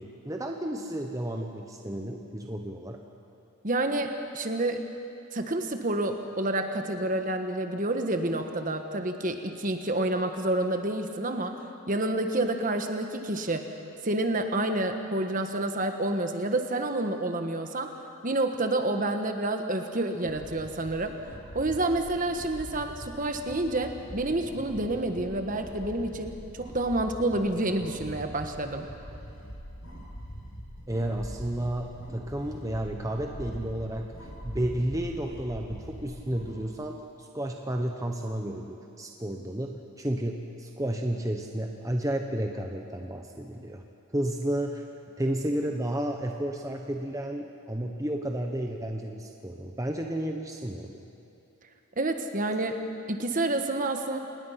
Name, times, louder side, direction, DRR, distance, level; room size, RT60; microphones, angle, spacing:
voice 1, 0.0-3.0 30.9-34.1 34.4-43.8 44.1-44.8 45.2-51.0, right 1 dB, 15° right, 2 dB, 1.0 m, -32 dB
voice 2, 3.6-4.8 5.3-11.6 11.9-13.7 14.0-17.9 18.2-21.1 21.5-28.9 52.0-52.8 53.1-54.2, right 2 dB, 40° right, 6 dB, 1.3 m, -29 dB
sound 1, 20.1-36.5, equal, 65° left, 7.1 m, -43 dB
27.0 x 19.5 x 5.8 m, 2.7 s
head